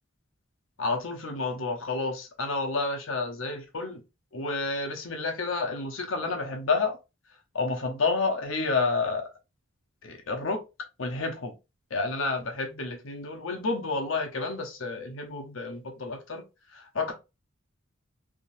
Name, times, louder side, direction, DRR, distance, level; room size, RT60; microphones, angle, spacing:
voice 1, 0.8-4.0 4.3-7.0 7.5-9.3 10.0-10.6 11.0-11.5 11.9-16.4 16.7-17.1, left 3 dB, 75° left, 0.9 m, -30 dB
3.6 x 2.7 x 2.6 m
head